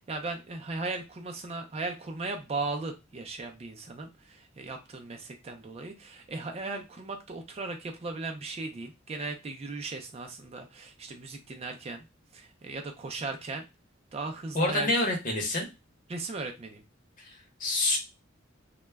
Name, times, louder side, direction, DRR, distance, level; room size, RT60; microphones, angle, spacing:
voice 1, 0.0-12.1 12.3-13.7 14.1-14.9 16.1-16.8, right 3 dB, 30° right, 4 dB, 0.4 m, -37 dB
voice 2, 14.5-15.7 17.2-18.0, left 2 dB, 45° left, 1 dB, 0.8 m, -27 dB
2.2 x 2.0 x 3.3 m, 0.25 s
head